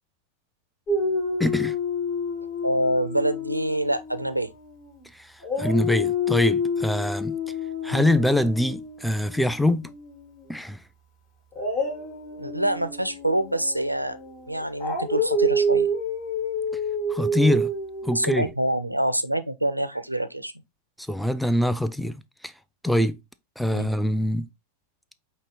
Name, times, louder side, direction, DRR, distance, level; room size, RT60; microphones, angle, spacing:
Dog, 0.9-5.0 5.4-10.4 11.5-18.5, left 1 dB, 35° left, 1.2 m, -29 dB
voice 1, 1.4-1.8 5.1-7.4 7.8-9.9 10.5-10.8 17.1-17.7 18.0-18.5 21.0-22.2 22.4-22.5 22.8-23.2 23.6-24.5, left 1 dB, ahead, 0.3 m, -24 dB
voice 2, 2.6-4.5 7.9-8.0 12.4-14.2 14.5-15.9 18.1-20.5 23.7-23.9, right 1 dB, 85° right, 0.4 m, -26 dB
5.2 x 2.7 x 2.9 m
figure-of-eight pair, 90°, 0 cm